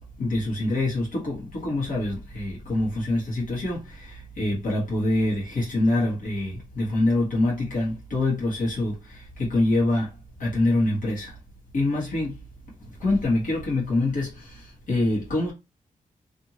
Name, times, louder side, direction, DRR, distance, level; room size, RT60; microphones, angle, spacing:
voice 1, 0.2-10.1 10.4-11.3 11.7-12.4 13.0-15.5, left 2 dB, 65° left, 1.4 m, -25 dB
2.6 x 2.6 x 2.8 m
wide cardioid pair, 175°, 15 cm